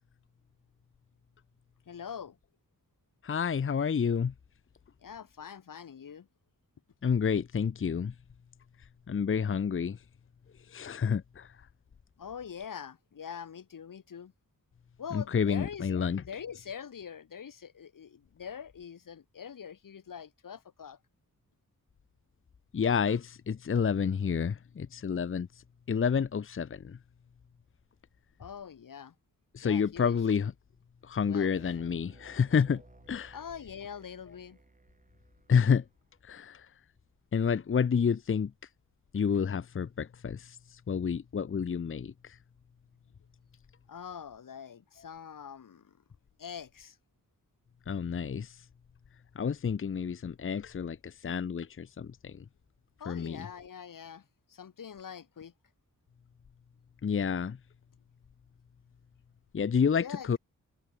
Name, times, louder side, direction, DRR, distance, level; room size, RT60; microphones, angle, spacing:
voice 1, 1.9-2.3 5.0-6.3 12.2-14.3 15.0-21.0 28.4-29.1 29.6-30.2 31.3-31.7 33.3-34.6 43.9-45.8 46.4-46.9 53.0-54.2 54.5-55.5 59.9-60.4, left 7 dB, 85° left, 5.0 m, -44 dB
voice 2, 3.2-4.3 7.0-8.1 9.1-10.0 10.7-11.5 15.1-16.2 22.7-25.5 25.9-27.0 29.5-30.5 31.1-32.8 33.1-33.4 35.5-35.8 36.3-36.6 37.3-38.5 39.1-40.5 40.9-42.1 47.9-48.5 49.4-51.0 51.2-52.3 53.1-53.5 57.0-57.6 59.5-60.4, left 6 dB, 40° left, 0.8 m, -29 dB
sound 1, 31.5-36.1, right 3 dB, 25° right, 7.8 m, -58 dB
wide cardioid pair, 140°, 32 cm